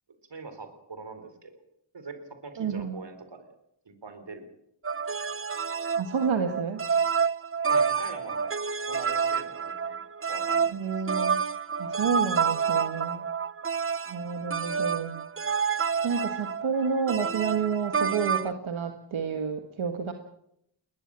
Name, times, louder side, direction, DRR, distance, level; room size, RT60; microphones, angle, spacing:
voice 1, 0.3-1.6 1.9-3.5 3.9-4.5 7.7-8.5 8.9-10.0 10.3-11.0 11.9-12.0, right 3 dB, 65° right, 9 dB, 4.0 m, -43 dB
voice 2, 2.6-3.0 6.0-6.9 10.7-11.4 11.8-13.2 14.1-15.2 16.0-20.1, right 6 dB, 85° right, 6 dB, 1.7 m, -29 dB
sound 1, 4.8-18.5, right 6 dB, 30° right, 0.8 m, -28 dB
22.0 x 19.0 x 7.6 m, 0.76 s
cardioid pair, 55°, 47 cm